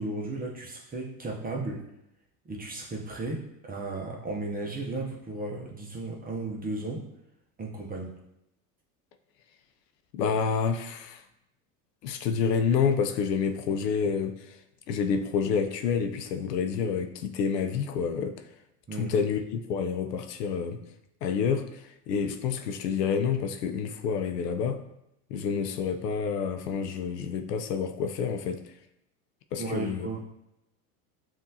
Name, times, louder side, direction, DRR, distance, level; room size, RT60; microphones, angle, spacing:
voice 1, 0.0-1.9 2.4-7.0 7.6-8.1 18.9-19.1 29.6-30.2, right 2 dB, 20° right, -1 dB, 0.8 m, -35 dB
voice 2, 10.1-11.2 12.0-14.6 14.9-18.4 19.0-20.8 21.2-24.8 25.3-28.6 29.5-30.1, left 6 dB, 80° left, 6 dB, 0.7 m, -28 dB
7.2 x 2.7 x 2.8 m, 0.85 s
hypercardioid pair, 95°, 48 cm